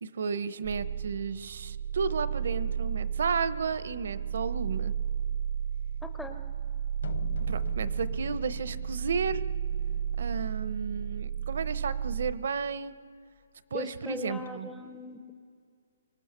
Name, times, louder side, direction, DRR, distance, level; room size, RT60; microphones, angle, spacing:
voice 1, 0.0-4.9 7.4-9.4 10.2-12.9 13.7-14.7, right 5 dB, 55° right, 14 dB, 0.8 m, -33 dB
sound 1, 0.6-12.3, right 8 dB, 80° right, 2.9 m, -33 dB
voice 2, 6.0-6.4 13.7-15.3, left 2 dB, ahead, 6 dB, 0.5 m, -39 dB
sound 2, 7.0-11.0, left 5 dB, 65° left, 0.9 m, -43 dB
26.5 x 24.5 x 6.8 m, 2.3 s
hypercardioid pair, 180°, 0 cm